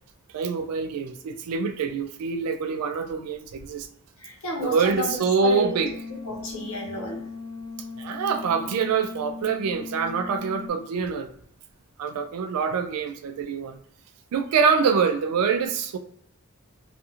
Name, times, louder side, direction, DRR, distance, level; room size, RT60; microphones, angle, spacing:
voice 1, 0.3-3.9 4.6-5.9 8.0-11.3 12.0-13.8 14.3-16.0, right 5 dB, 85° right, 0.3 m, -25 dB
voice 2, 4.2-5.8 6.2-7.3, left 1 dB, 70° left, 0.9 m, -31 dB
sound 1, 5.5-10.7, left 4 dB, 25° left, 0.4 m, -38 dB
2.5 x 2.4 x 2.7 m
head